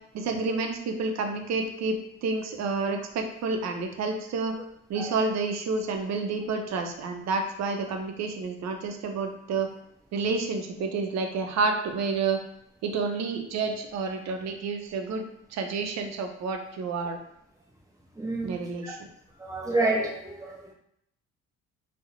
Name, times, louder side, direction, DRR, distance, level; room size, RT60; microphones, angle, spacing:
voice 1, 0.1-4.6 4.9-9.7 10.1-12.4 12.8-15.2 15.5-17.2 18.4-19.1, right 4 dB, 65° right, 4 dB, 0.5 m, -29 dB
voice 2, 18.2-18.6 18.8-18.9 19.4-20.7, right 2 dB, 10° right, -2 dB, 0.6 m, -28 dB
2.4 x 2.0 x 2.8 m, 0.75 s
cardioid pair, 90°, 30 cm